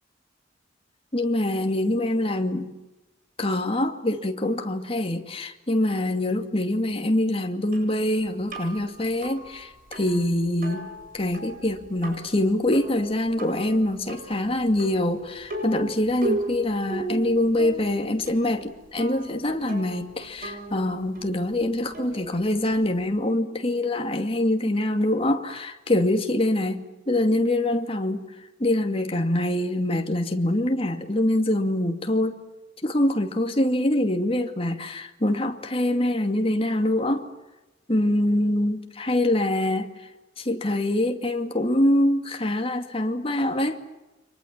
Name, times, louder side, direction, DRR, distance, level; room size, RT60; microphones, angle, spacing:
voice 1, 1.1-2.7 3.4-10.9 11.1-28.2 28.6-32.4 32.8-37.3 37.9-39.9 40.4-43.8, left 1 dB, 30° left, 2.5 m, -24 dB
sound 1, 7.7-23.1, right 2 dB, 50° right, 7.8 m, -37 dB
30.0 x 25.0 x 7.5 m
head